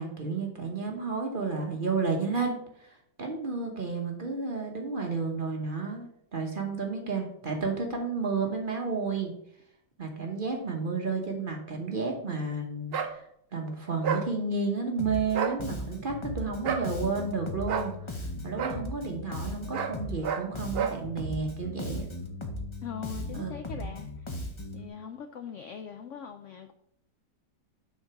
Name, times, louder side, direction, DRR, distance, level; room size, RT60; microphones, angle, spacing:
voice 1, 0.0-2.9 3.2-9.3 10.0-13.2 13.5-18.2 18.4-22.1 23.3-23.9, right 4 dB, 40° right, 2 dB, 0.9 m, -32 dB
sound 1, 12.9-13.1 14.0-14.3 15.3-15.6 16.6-16.9 17.7-17.9 18.6-18.8 19.7-20.0 20.2-20.5 20.7-21.0, right 7 dB, 65° right, 0.5 m, -30 dB
Bass guitar, 15.0-15.3 15.6-20.3 20.5-24.9, left 1 dB, 35° left, 0.4 m, -37 dB
voice 2, 22.8-24.3 24.7-26.7, left 7 dB, 85° left, 7 dB, 0.6 m, -41 dB
6.4 x 3.8 x 5.8 m, 0.71 s
omnidirectional pair, 1.8 m